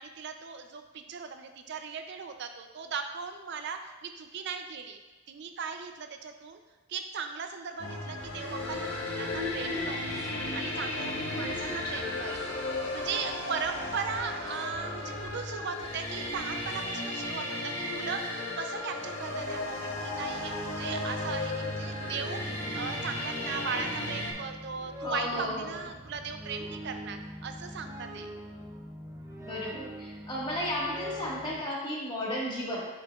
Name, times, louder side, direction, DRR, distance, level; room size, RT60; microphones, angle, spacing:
voice 1, 0.0-5.0 5.3-6.6 6.9-10.3 10.5-12.6 12.9-28.3, right 5 dB, 55° right, 6 dB, 0.5 m, -38 dB
sound 1, 7.8-24.3, left 2 dB, 75° left, 1.5 m, -35 dB
sound 2, 8.2-16.9, left 1 dB, ahead, 1.0 m, -56 dB
voice 2, 11.4-12.0 25.0-25.8 29.4-32.9, left 1 dB, 25° left, -5 dB, 1.6 m, -34 dB
sound 3, 19.9-31.6, equal, 15° right, 0.6 m, -43 dB
9.6 x 6.3 x 2.4 m, 1.2 s
head